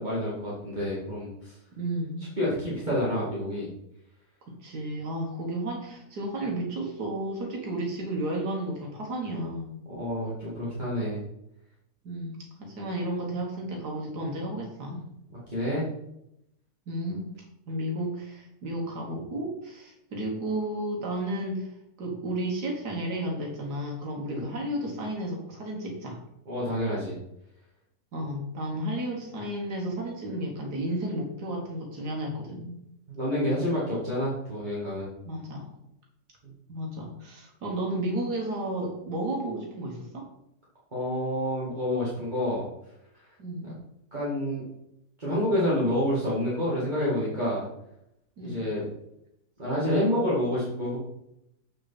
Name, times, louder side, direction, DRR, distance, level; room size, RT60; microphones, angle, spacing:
voice 1, 0.0-1.6 2.4-3.7 9.9-11.2 15.5-15.8 24.3-24.5 26.5-27.2 33.1-35.1 40.9-42.7 43.6-43.7 44.1-44.6 45.2-47.6 48.4-48.8 49.6-51.0, left 1 dB, 30° right, -8 dB, 2.4 m, -28 dB
voice 2, 1.8-2.3 4.5-9.7 12.0-15.0 16.9-17.3 17.7-21.7 22.0-26.2 28.1-32.8 35.3-35.7 36.7-40.3 43.4-43.8 48.4-48.7, right 1 dB, 80° right, -1 dB, 2.1 m, -32 dB
7.9 x 6.5 x 4.2 m, 0.81 s
omnidirectional pair, 1.7 m